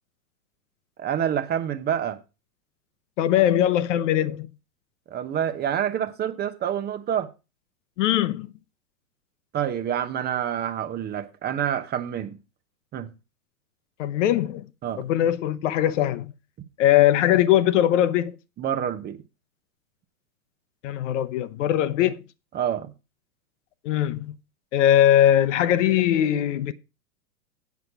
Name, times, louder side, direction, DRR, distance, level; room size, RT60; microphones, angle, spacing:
voice 1, 1.0-2.2 5.1-7.3 9.5-12.4 12.9-13.1 14.8-15.0 18.6-19.2 22.5-22.9, right 9 dB, 20° right, 0.8 m, -27 dB
voice 2, 3.2-4.5 8.0-8.5 14.0-14.6 15.0-16.3 16.8-18.4 20.8-22.2 23.8-24.3 24.7-26.7, left 11 dB, 50° left, 0.8 m, -21 dB
8.3 x 6.4 x 5.8 m
hypercardioid pair, 105°, 46 cm